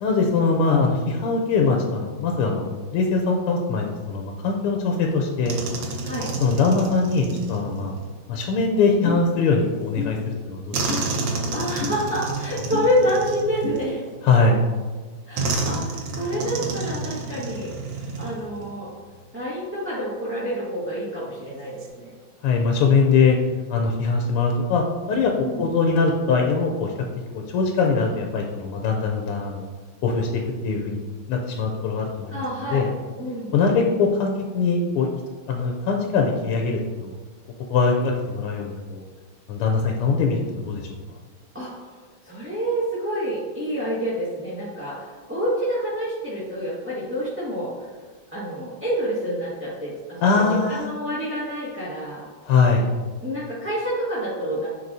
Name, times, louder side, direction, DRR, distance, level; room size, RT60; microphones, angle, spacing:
voice 1, 0.0-5.5 6.4-7.9 8.3-10.9 14.2-14.6 22.4-23.4 23.7-27.1 27.3-29.7 30.0-31.0 31.3-32.9 33.5-35.1 35.5-37.1 37.7-39.0 39.5-41.0 50.2-50.9 52.5-52.9, left 4 dB, 90° left, 2 dB, 1.6 m, -22 dB
sound 1, 5.5-8.1 10.7-14.2 15.4-18.7 19.0-19.2 21.5-21.9, right 3 dB, 65° right, 1.3 m, -30 dB
sound 2, 9.0-9.2 10.0-10.1 10.9-11.0 11.8-11.9 12.7-12.9 13.6-13.8, left 4 dB, 40° left, 1.5 m, -28 dB
voice 2, 11.5-14.0 15.3-17.7 18.2-18.9 19.3-22.1 25.4-25.7 32.3-32.9 33.2-33.5 41.5-41.9 42.2-47.7 48.3-52.3 53.2-54.7, equal, 5° right, -11 dB, 1.1 m, -28 dB
9.7 x 3.8 x 2.7 m, 1.4 s
omnidirectional pair, 2.4 m